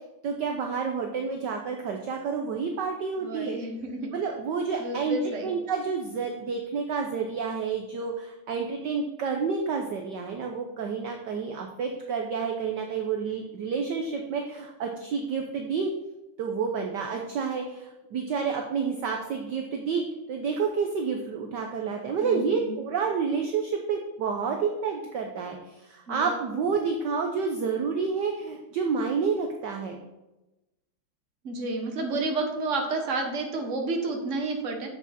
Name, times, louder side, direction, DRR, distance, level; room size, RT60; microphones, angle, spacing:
voice 1, 0.2-3.6 4.1-15.9 16.4-20.0 20.3-30.0, right 5 dB, 65° right, 3 dB, 1.3 m, -29 dB
voice 2, 3.2-4.1 4.8-5.5 22.2-22.8 26.1-26.6 31.4-34.9, right 3 dB, 40° right, 3 dB, 1.4 m, -31 dB
8.0 x 7.2 x 4.2 m, 0.99 s
omnidirectional pair, 2.4 m